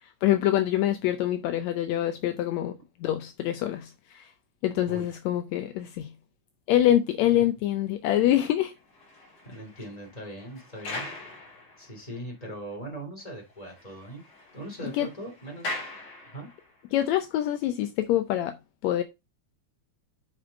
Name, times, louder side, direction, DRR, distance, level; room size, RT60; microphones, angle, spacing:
voice 1, 0.2-2.8 3.0-4.3 4.6-6.1 6.7-8.7 14.9-15.1 16.9-18.6 18.8-19.0, left 12 dB, 75° left, 1.9 m, -25 dB
sound 1, 8.7-12.2 12.7-12.8 13.2-13.3 13.6-16.8, left 2 dB, 60° left, 3.5 m, -41 dB
voice 2, 9.4-11.1 11.8-14.2 14.5-15.8 16.3-16.5, right 1 dB, 10° left, 3.5 m, -40 dB
6.5 x 5.7 x 5.0 m
omnidirectional pair, 3.3 m